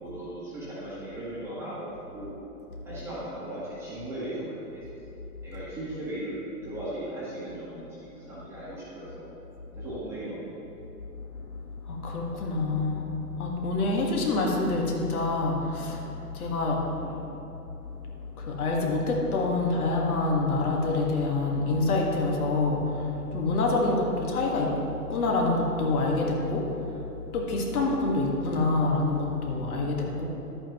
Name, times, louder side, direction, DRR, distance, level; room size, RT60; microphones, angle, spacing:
voice 1, 0.0-1.9 2.1-2.4 2.8-6.3 6.6-9.3 9.8-10.5 17.0-17.2, right 1 dB, 5° right, -10 dB, 1.3 m, -37 dB
voice 2, 11.2-16.9 17.6-17.7 18.1-27.0 27.3-30.3, left 2 dB, 65° left, -1 dB, 1.7 m, -27 dB
11.5 x 8.7 x 3.0 m, 3.0 s
hypercardioid pair, 160°, 48 cm